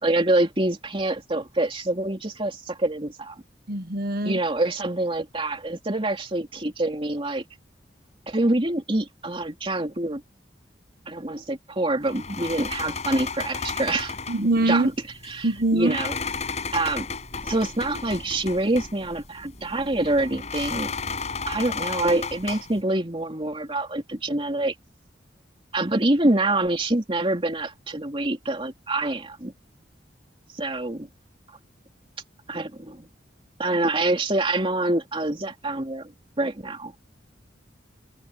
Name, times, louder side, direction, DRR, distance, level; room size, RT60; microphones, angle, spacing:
voice 1, 0.0-3.4 4.2-7.4 8.3-10.2 11.1-14.9 15.2-16.2 16.7-17.1 17.4-20.9 21.5-24.7 25.7-29.5 30.5-31.1 32.5-33.1 33.6-36.1 36.4-36.9, right 2 dB, 30° right, 3.1 m, -26 dB
voice 2, 3.7-4.4 14.3-14.9 15.4-16.0, right 2 dB, 55° right, 1.2 m, -23 dB
sound 1, 12.1-22.8, left 5 dB, 40° left, 5.7 m, -34 dB
head